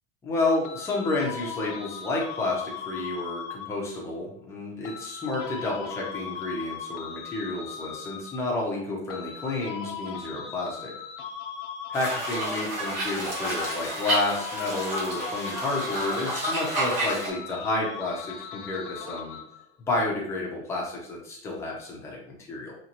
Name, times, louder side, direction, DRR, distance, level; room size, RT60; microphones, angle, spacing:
voice 1, 0.2-10.9 11.9-19.4 19.8-22.8, left 2 dB, 10° left, -3 dB, 0.4 m, -30 dB
sound 1, 0.6-4.0 4.8-8.6 9.1-13.0 13.3-19.6, left 7 dB, 85° left, 0.9 m, -39 dB
sound 2, 11.9-17.3, right 1 dB, 40° right, 1.7 m, -30 dB
5.3 x 2.8 x 2.8 m, 0.69 s
supercardioid pair, 180°, 35 cm